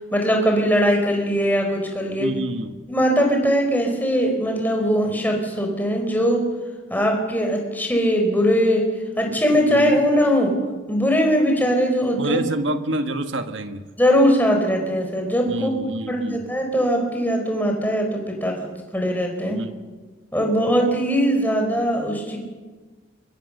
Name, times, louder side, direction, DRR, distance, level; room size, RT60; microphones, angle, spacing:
voice 1, 0.1-2.3 2.9-6.5 6.9-8.9 9.2-10.5 10.9-12.4 14.0-15.7 16.1-19.6 20.3-22.4, equal, 10° left, 2 dB, 4.7 m, -20 dB
voice 2, 2.2-2.8 9.3-9.4 9.7-10.0 12.2-13.8 15.5-16.4 19.5-19.7, right 1 dB, 80° right, 7 dB, 1.6 m, -27 dB
27.0 x 23.5 x 6.7 m, 1.3 s
head